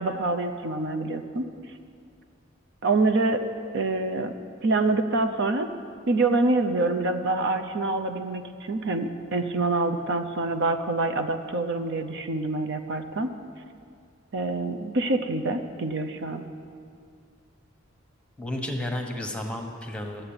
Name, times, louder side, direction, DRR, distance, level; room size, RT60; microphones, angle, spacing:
voice 1, 0.0-1.5 2.8-3.4 3.7-4.3 4.6-5.7 6.1-13.3 14.3-16.4, right 2 dB, 60° right, 7 dB, 0.7 m, -26 dB
voice 2, 18.4-20.3, left 1 dB, 5° left, 3 dB, 1.2 m, -32 dB
13.5 x 7.9 x 8.8 m, 2.3 s
head